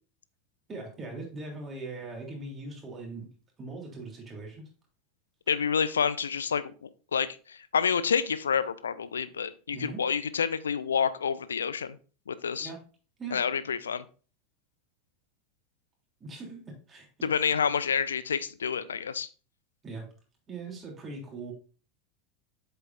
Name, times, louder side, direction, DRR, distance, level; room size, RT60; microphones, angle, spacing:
voice 1, 0.7-3.3 3.6-4.6 9.7-10.0 12.6-12.8 13.2-13.4 16.2-17.1 19.8-20.0 20.5-21.5, right 3 dB, 25° right, -1 dB, 3.3 m, -40 dB
voice 2, 5.5-12.0 12.3-12.7 13.3-14.0 17.2-19.3, left 7 dB, 70° left, 16 dB, 0.5 m, -28 dB
8.1 x 6.9 x 2.7 m, 0.36 s
figure-of-eight pair, 80°, 0 cm